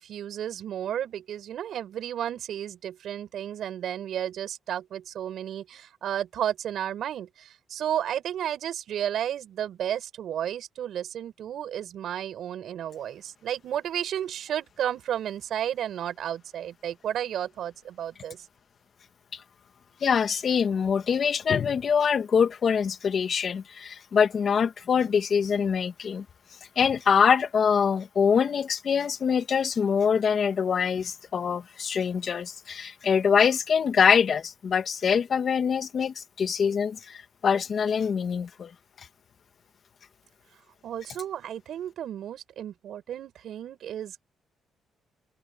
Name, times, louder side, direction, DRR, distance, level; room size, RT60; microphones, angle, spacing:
voice 1, 0.0-18.4 40.8-44.2, right 10 dB, 70° right, 5.9 m, -32 dB
voice 2, 20.0-26.3 26.8-38.7 39.0-39.1, left 6 dB, 50° left, 2.0 m, -24 dB
cardioid pair, 90°, 0 cm